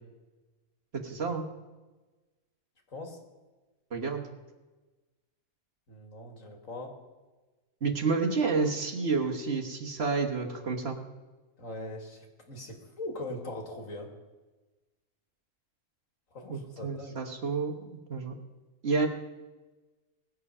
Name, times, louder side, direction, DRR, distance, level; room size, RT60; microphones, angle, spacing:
voice 1, 1.0-1.5 3.9-4.2 7.8-11.0 16.5-18.3 18.8-19.1, right 4 dB, 45° right, 2 dB, 1.5 m, -30 dB
voice 2, 5.9-6.9 11.6-14.1 16.3-17.2, left 2 dB, 60° left, 2 dB, 2.3 m, -41 dB
20.0 x 7.5 x 5.5 m, 1.2 s
omnidirectional pair, 1.5 m